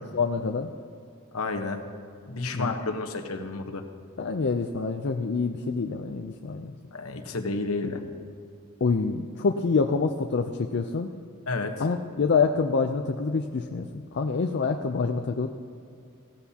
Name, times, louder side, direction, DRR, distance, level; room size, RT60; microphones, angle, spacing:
voice 1, 0.1-0.7 2.5-2.7 4.2-6.7 8.8-11.1 11.8-13.9 14.1-15.5, left 4 dB, 50° left, 4 dB, 0.5 m, -26 dB
voice 2, 1.3-1.8 2.3-3.8 6.9-8.0 11.5-11.7, left 3 dB, 70° left, 5 dB, 1.1 m, -30 dB
16.5 x 14.0 x 2.9 m, 2.4 s
head